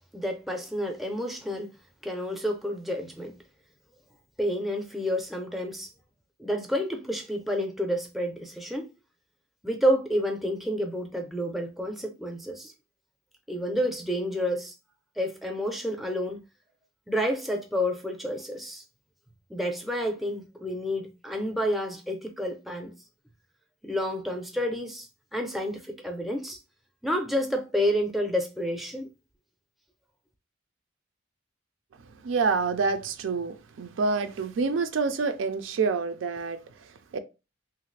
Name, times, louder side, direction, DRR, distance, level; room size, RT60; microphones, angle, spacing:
voice 1, 0.1-1.7 2.0-3.3 4.4-5.9 6.4-8.9 9.6-12.7 13.5-14.7 15.2-16.4 17.1-18.8 19.5-22.9 23.8-26.6 27.0-29.1, equal, ahead, 0.4 m, -29 dB
voice 2, 32.2-36.6 37.1-37.2, right 4 dB, 80° right, 0.4 m, -27 dB
3.0 x 2.4 x 3.1 m
head